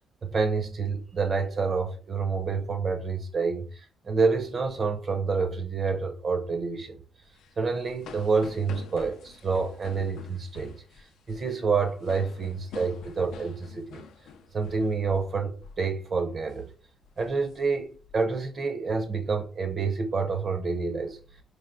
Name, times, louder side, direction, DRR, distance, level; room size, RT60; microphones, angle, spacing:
voice 1, 0.2-7.0 7.6-14.0 14.5-16.7 17.2-21.2, right 4 dB, 40° right, 0.4 m, -28 dB
sound 1, 7.3-15.3 15.6-15.9 16.3-16.6 17.0-18.2, left 6 dB, 80° left, 0.3 m, -47 dB
4.1 x 3.2 x 2.5 m
cardioid pair, 125°, 0 cm